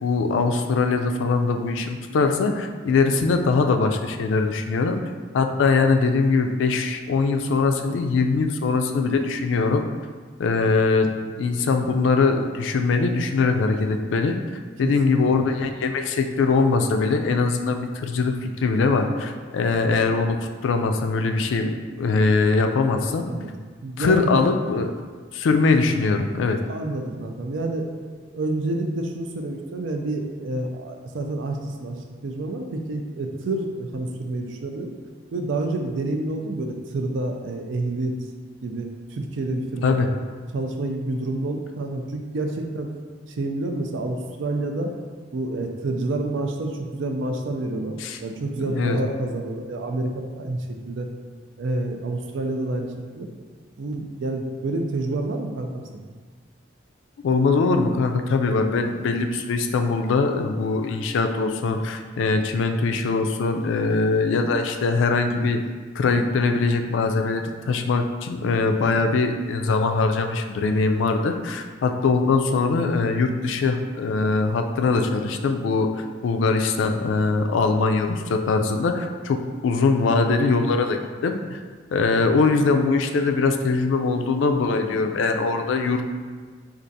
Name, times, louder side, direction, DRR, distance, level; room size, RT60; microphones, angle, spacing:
voice 1, 0.0-5.0 5.3-9.8 10.4-14.4 14.8-23.3 24.0-24.9 25.3-26.6 39.8-40.1 48.0-48.2 48.6-49.0 57.2-65.6 66.0-81.6 81.9-86.0, left 4 dB, 85° left, 5 dB, 0.3 m, -22 dB
voice 2, 14.8-15.1 23.3-23.5 23.8-24.4 26.7-27.9 28.3-34.9 35.3-38.1 38.6-40.1 40.5-42.9 43.3-44.9 45.3-47.9 48.2-51.1 51.6-53.3 53.8-56.0, right 2 dB, 80° right, 3 dB, 0.4 m, -28 dB
4.5 x 2.4 x 2.6 m, 1.5 s
head